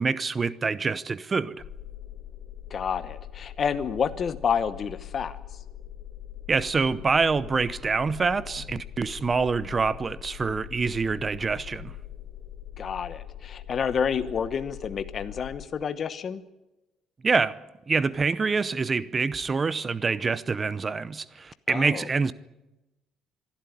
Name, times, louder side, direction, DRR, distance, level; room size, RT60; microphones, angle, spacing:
voice 1, 0.0-1.6 6.5-11.9 17.2-17.6 17.9-22.3, right 4 dB, 25° right, 0.7 m, -26 dB
sound 1, 1.6-15.7, left 11 dB, 65° left, 4.0 m, -42 dB
voice 2, 2.7-5.4 12.8-16.4 21.7-22.1, left 7 dB, 40° left, 1.0 m, -29 dB
25.5 x 11.5 x 9.9 m
cardioid pair, 125°, 0 cm